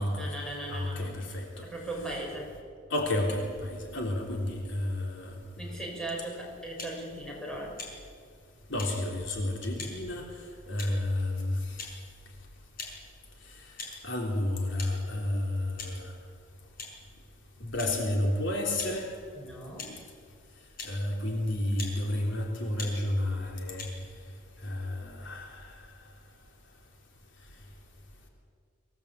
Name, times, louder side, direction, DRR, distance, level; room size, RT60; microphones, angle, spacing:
voice 1, 0.0-1.2 1.6-2.5 5.6-7.8 19.3-19.9, right 1 dB, 5° left, -2 dB, 6.2 m, -38 dB
voice 2, 0.7-1.7 2.9-5.3 8.7-10.3 10.7-11.8 14.0-16.1 17.6-19.1 20.8-23.9 24.6-25.7, left 1 dB, 60° left, 0 dB, 3.6 m, -31 dB
sound 1, 6.8-7.0 7.8-7.9 8.8-8.9 9.8-9.9 10.8-11.0 11.8-11.9 12.8-12.9 13.8-13.9 14.8-14.9 15.8-15.9 16.8-16.9 17.8-17.9 18.8-18.9 19.8-19.9 20.8-20.9 21.8-21.9 22.8-22.9 23.8-23.9, left 4 dB, 45° left, 5.9 m, -40 dB
25.0 x 18.0 x 8.5 m, 2.1 s
head